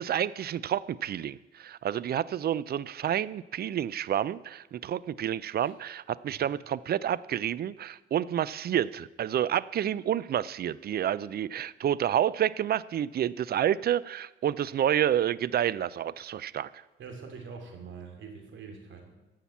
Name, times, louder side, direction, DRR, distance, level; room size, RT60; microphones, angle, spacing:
voice 1, 0.0-16.7, right 10 dB, 50° right, 19 dB, 0.5 m, -29 dB
voice 2, 17.0-19.1, right 5 dB, 70° right, 4 dB, 2.8 m, -44 dB
15.0 x 5.8 x 8.4 m, 1.1 s
cardioid pair, 90°, 20 cm